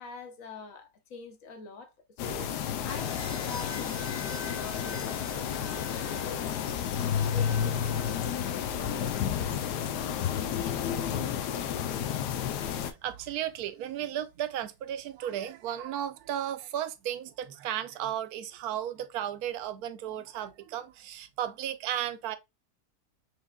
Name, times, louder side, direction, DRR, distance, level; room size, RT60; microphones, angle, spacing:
voice 1, 0.0-1.9 2.2-6.7 7.0-8.3, left 4 dB, 60° left, 1.0 m, -45 dB
sound 1, 2.2-12.9, left 9 dB, 90° left, 1.2 m, -31 dB
sound 2, 2.9-11.0 12.2-12.6, left 2 dB, 25° left, 0.6 m, -46 dB
voice 2, 12.0-12.3 12.7-22.4, right 11 dB, 75° right, 1.0 m, -35 dB
4.8 x 3.3 x 2.2 m
omnidirectional pair, 1.7 m